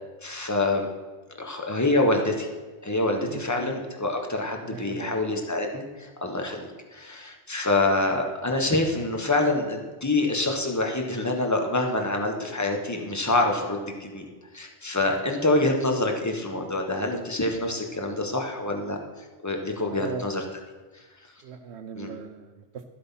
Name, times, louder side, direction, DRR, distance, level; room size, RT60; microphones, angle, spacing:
voice 1, 0.2-0.9 1.4-2.5 2.8-14.2 14.5-19.0 19.4-20.4 20.9-21.0 21.9-22.1, left 2 dB, 15° left, 3 dB, 1.4 m, -26 dB
voice 2, 3.2-3.7 4.6-5.2 19.9-20.3 21.4-22.9, right 6 dB, 70° right, 7 dB, 1.0 m, -39 dB
13.0 x 7.8 x 5.8 m, 1.3 s
omnidirectional pair, 1.2 m